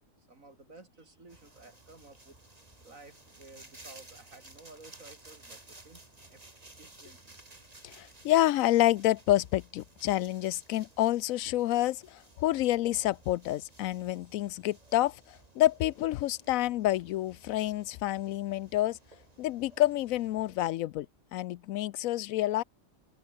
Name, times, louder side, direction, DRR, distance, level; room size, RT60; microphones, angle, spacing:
voice 1, 0.2-2.4 2.8-6.4 6.7-7.4 14.4-14.6, right 3 dB, 80° right, 4.6 m, -54 dB
sound 1, 1.3-20.7, right 2 dB, 30° right, 2.7 m, -56 dB
voice 2, 7.8-19.0 19.4-21.1 21.3-22.6, left 15 dB, 90° left, 1.0 m, -28 dB
omnidirectional pair, 1.4 m